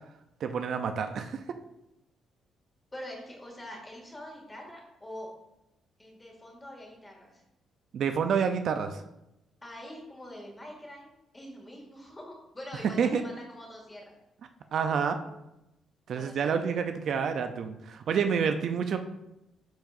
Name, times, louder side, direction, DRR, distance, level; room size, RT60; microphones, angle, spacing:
voice 1, 0.4-1.4 7.9-9.0 12.8-13.2 14.7-15.2 16.1-19.0, right 6 dB, 65° right, 8 dB, 0.5 m, -28 dB
voice 2, 2.9-5.3 6.0-7.4 9.6-14.1 16.1-16.5, left 1 dB, 15° left, -1 dB, 2.1 m, -44 dB
10.0 x 4.7 x 2.6 m, 0.91 s
cardioid pair, 90°, 0 cm